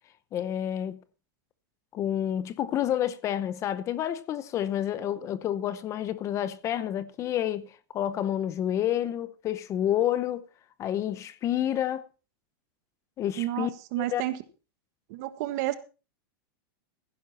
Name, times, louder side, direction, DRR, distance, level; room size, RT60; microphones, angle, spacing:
voice 1, 0.3-1.0 1.9-10.5 10.8-12.1 13.2-13.7 14.0-14.2, left 11 dB, 25° left, 0.8 m, -29 dB
voice 2, 13.4-14.4 15.1-15.7, right 16 dB, 50° right, 1.5 m, -30 dB
15.0 x 11.0 x 4.2 m
supercardioid pair, 160°, 12 cm